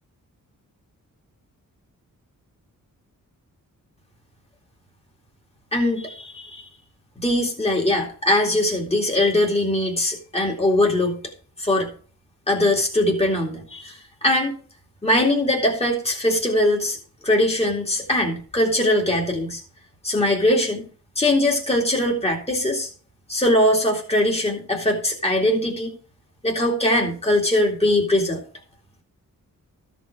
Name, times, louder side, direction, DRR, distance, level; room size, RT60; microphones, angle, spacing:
voice 1, 5.7-6.7 7.2-11.2 11.6-11.9 12.5-14.5 15.0-17.0 17.2-19.6 20.0-20.8 21.2-22.9 23.3-26.0 26.4-28.4, left 1 dB, 15° left, 0 dB, 2.3 m, -21 dB
13.0 x 5.4 x 4.7 m, 0.42 s
cardioid pair, 80°, 34 cm